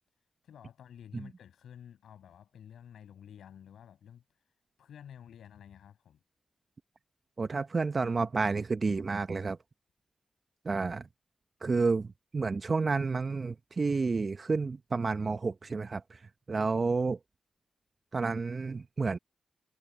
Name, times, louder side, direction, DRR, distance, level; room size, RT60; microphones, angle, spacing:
voice 1, 0.4-4.2 4.8-6.2, left 9 dB, 85° left, 7.1 m, -51 dB
voice 2, 7.4-9.6 10.6-11.1 11.6-12.1 12.3-16.2 16.5-17.2 18.1-19.2, right 4 dB, 50° right, 0.9 m, -30 dB
supercardioid pair, 40°, 0 cm